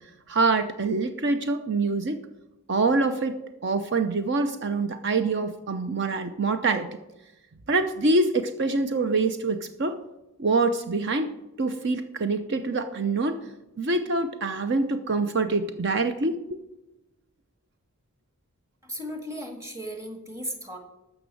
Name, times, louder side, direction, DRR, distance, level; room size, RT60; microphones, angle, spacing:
voice 1, 0.3-2.2 2.7-6.9 7.7-10.0 10.4-13.4 13.8-16.6, right 3 dB, 50° right, 9 dB, 0.7 m, -25 dB
voice 2, 18.8-20.8, equal, 15° right, 4 dB, 1.9 m, -36 dB
13.0 x 6.1 x 7.7 m, 0.96 s
head